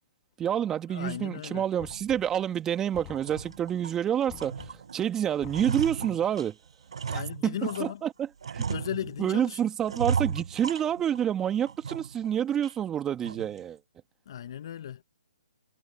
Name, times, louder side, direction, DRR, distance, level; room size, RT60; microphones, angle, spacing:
voice 1, 0.4-6.6 7.1-8.1 8.5-8.7 9.2-13.8, right 9 dB, 15° right, 2.1 m, -28 dB
voice 2, 0.9-1.6 7.0-8.0 8.7-9.6 14.3-15.0, left 10 dB, 50° left, 1.0 m, -36 dB
Knock, 1.8-2.5 2.9-3.7 4.3-4.9 5.4-6.1, left 39 dB, 30° left, 6.5 m, -48 dB
sound 1, 1.9-2.0 2.5-2.6 3.1-4.0 4.4-5.0 5.3-7.9 8.4-9.4 9.9-11.3 11.7-12.3 12.6-12.7 13.2-13.6, right 6 dB, 70° right, 0.5 m, -35 dB
figure-of-eight pair, 135°, 3 cm